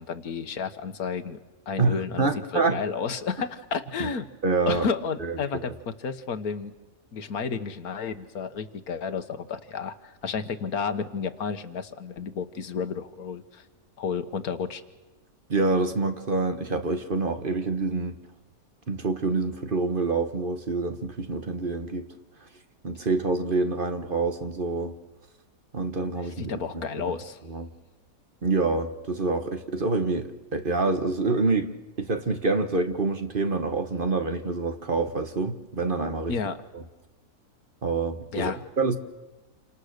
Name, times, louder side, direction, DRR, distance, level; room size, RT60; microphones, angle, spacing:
voice 1, 0.0-1.4 1.7-4.3 4.7-6.7 7.1-13.6 14.0-14.8 26.2-27.4 36.3-36.6 38.3-38.6, left 5 dB, 90° left, 10 dB, 1.7 m, -31 dB
voice 2, 1.8-2.8 4.0-4.1 4.4-4.9 5.2-5.7 15.5-18.2 18.9-22.1 22.8-24.9 25.7-27.2 27.5-27.7 28.4-31.7 32.0-36.3 36.7-36.8 37.8-39.0, right 3 dB, 40° right, 8 dB, 1.4 m, -27 dB
28.0 x 25.5 x 6.7 m, 1.1 s
omnidirectional pair, 1.5 m